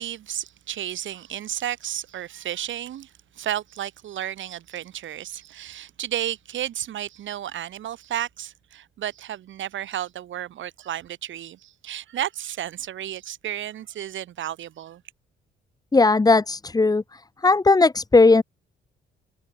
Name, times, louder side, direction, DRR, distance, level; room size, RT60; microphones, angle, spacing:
voice 1, 0.0-15.0, right 11 dB, 75° right, 7.6 m, -32 dB
voice 2, 15.9-17.0 17.4-18.4, left 3 dB, 20° left, 1.3 m, -17 dB
cardioid pair, 90°, 20 cm